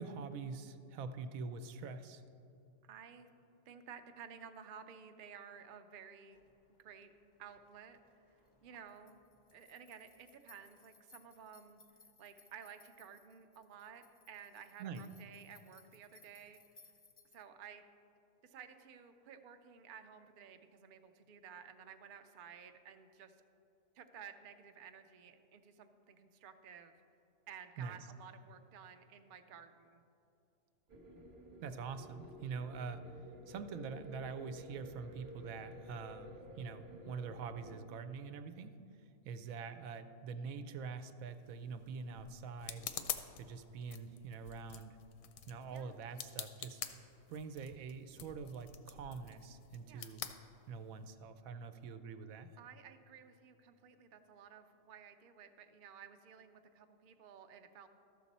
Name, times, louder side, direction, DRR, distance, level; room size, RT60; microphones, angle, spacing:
voice 1, 0.0-2.2 14.8-15.0 27.8-28.0 31.6-38.7 39.2-45.0 45.5-46.8 47.3-50.2 50.7-52.5, right 5 dB, 85° right, 10 dB, 1.0 m, -45 dB
voice 2, 2.8-3.3 3.7-6.4 6.8-7.1 7.4-8.0 8.3-9.2 9.5-11.8 12.2-16.9 17.3-17.8 18.4-23.4 23.9-26.9 27.5-30.0 45.7-46.0 49.9-50.1 52.6-57.9, right 7 dB, 60° right, 7 dB, 0.5 m, -54 dB
sound 1, 6.3-17.4, left 3 dB, 35° left, 0.3 m, -66 dB
sound 2, 30.9-37.9, equal, 40° right, 1.0 m, -53 dB
sound 3, 41.3-51.1, left 9 dB, 85° left, 1.0 m, -48 dB
13.0 x 6.6 x 4.1 m, 2.7 s
omnidirectional pair, 1.4 m